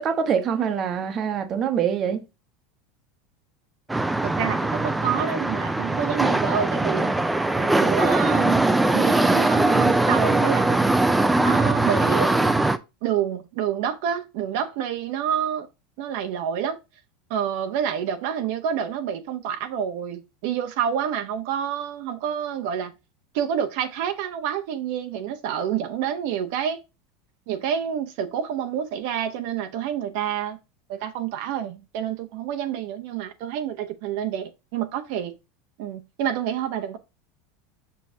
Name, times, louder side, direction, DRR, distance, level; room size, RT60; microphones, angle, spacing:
voice 1, 0.0-2.2, right 7 dB, 30° right, 0.9 m, -24 dB
sound 1, 3.9-12.8, right 2 dB, 5° right, 0.4 m, -21 dB
voice 2, 4.2-7.1 7.6-8.6 8.9-10.9 11.4-12.5 13.0-15.7 16.0-16.8 17.3-22.9 23.3-26.8 27.5-30.6 30.9-35.3 35.8-37.0, right 9 dB, 60° right, 0.8 m, -28 dB
6.3 x 6.2 x 2.7 m
supercardioid pair, 160°, 0 cm